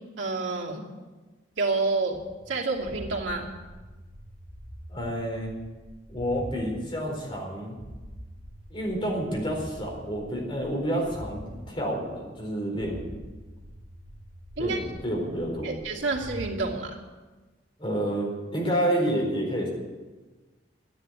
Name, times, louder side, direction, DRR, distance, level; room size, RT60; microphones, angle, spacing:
voice 1, 0.2-0.8 1.6-2.2 2.5-3.5 14.6-14.8 15.6-17.0, right 3 dB, 85° right, -2 dB, 2.7 m, -28 dB
sound 1, 2.1-6.6 6.9-11.6 11.9-12.5 12.7-16.6, equal, ahead, 6.9 m, -44 dB
voice 2, 4.9-5.5 6.1-7.8 8.7-13.2 14.6-15.7 17.8-19.7, equal, 30° left, -1 dB, 4.3 m, -29 dB
13.0 x 10.5 x 8.9 m, 1.3 s
head